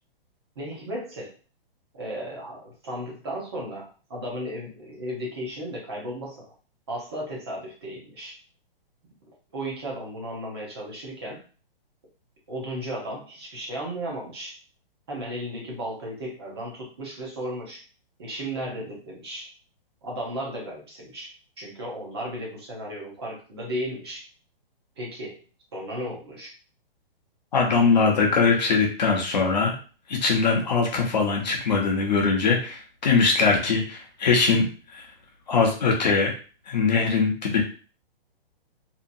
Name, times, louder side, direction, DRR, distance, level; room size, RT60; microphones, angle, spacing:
voice 1, 0.6-1.3 1.9-6.5 6.9-8.4 9.5-11.4 12.5-14.6 15.1-17.8 18.2-19.5 20.0-24.2 25.0-25.4 25.7-26.5, equal, 25° right, -3 dB, 0.7 m, -35 dB
voice 2, 27.5-29.7 30.1-35.1 35.5-36.3 36.7-37.6, left 4 dB, 45° left, 1 dB, 0.7 m, -22 dB
2.8 x 2.4 x 2.6 m, 0.37 s
hypercardioid pair, 175°, 30 cm